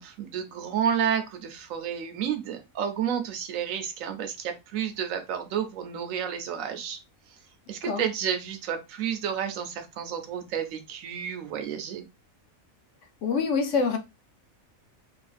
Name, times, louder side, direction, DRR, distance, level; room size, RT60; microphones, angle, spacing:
voice 1, 0.0-7.0 7.7-12.1, right 8 dB, 80° right, 1.0 m, -31 dB
voice 2, 13.2-14.0, left 5 dB, 70° left, 0.9 m, -25 dB
3.1 x 2.5 x 2.4 m
omnidirectional pair, 1.4 m